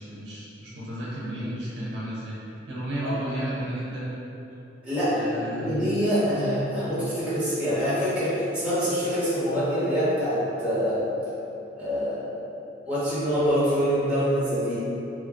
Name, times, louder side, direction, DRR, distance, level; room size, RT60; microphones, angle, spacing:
voice 1, 0.0-2.4 2.7-4.1 5.1-5.9, right 1 dB, 70° right, -8 dB, 0.7 m, -33 dB
voice 2, 4.8-11.0 11.8-12.2 12.8-14.8, equal, 5° right, -13 dB, 1.2 m, -25 dB
3.0 x 2.4 x 3.7 m, 3.0 s
head